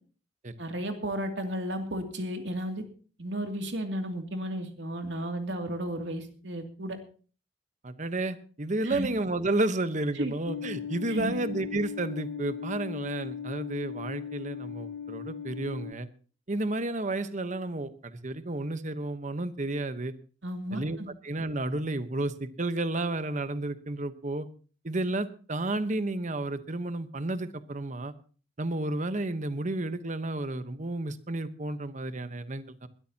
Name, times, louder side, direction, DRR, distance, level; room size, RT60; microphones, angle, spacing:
voice 1, 0.6-2.8 3.2-7.0 8.8-9.1 10.1-10.3 11.1-11.4 20.4-21.1, right 1 dB, 70° right, 4 dB, 2.5 m, -33 dB
voice 2, 7.8-16.1 16.5-20.1 20.7-21.0 21.2-24.5 24.8-28.1 28.6-32.9, right 2 dB, 40° right, 11 dB, 1.0 m, -31 dB
sound 1, 10.5-15.9, left 7 dB, 45° left, 0.5 m, -38 dB
21.5 x 13.0 x 2.9 m, 0.39 s
head